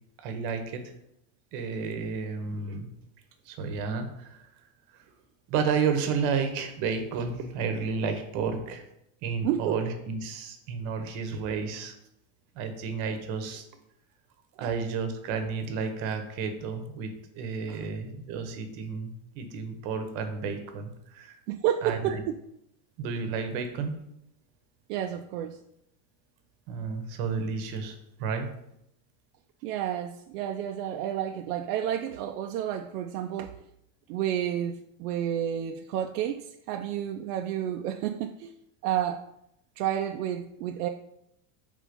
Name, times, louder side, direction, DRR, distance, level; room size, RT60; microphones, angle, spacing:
voice 1, 0.2-0.8 1.5-2.9 3.5-4.4 5.5-8.8 9.2-11.9 12.5-13.6 14.6-21.4 21.8-22.2 23.0-23.9 26.7-28.5, right 5 dB, 50° right, 7 dB, 1.0 m, -31 dB
voice 2, 9.4-9.8 14.6-14.7 17.7-17.8 21.5-22.3 24.9-25.6 29.6-33.6 34.1-38.5 38.8-39.3 39.8-40.9, right 10 dB, 75° right, 5 dB, 0.6 m, -30 dB
5.1 x 3.7 x 5.1 m, 0.78 s
supercardioid pair, 165°, 47 cm